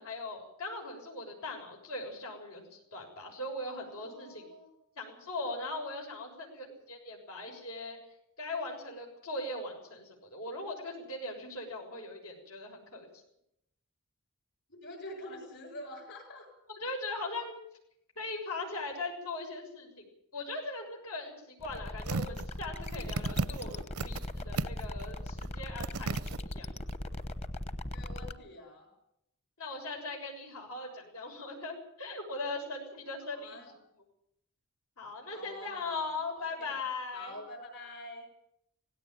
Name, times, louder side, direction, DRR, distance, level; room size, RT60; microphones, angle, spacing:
voice 1, 0.0-4.5 4.9-8.0 8.4-13.1 16.7-17.6 18.1-20.1 20.3-26.2 26.5-26.7 29.6-33.6 35.0-37.3, left 2 dB, 85° left, -1 dB, 6.9 m, -39 dB
voice 2, 3.9-4.7 14.7-16.5 27.9-28.9 33.2-33.7 35.3-36.8 37.1-38.3, left 1 dB, 55° left, 3 dB, 7.3 m, -46 dB
sound 1, 21.6-28.3, left 1 dB, 30° left, 1.0 m, -39 dB
sound 2, 22.0-22.4 22.8-24.3 24.6-25.0 25.4-25.5 25.8-26.4 26.9-27.0, right 3 dB, 90° right, 0.7 m, -34 dB
18.5 x 17.0 x 9.4 m, 0.78 s
head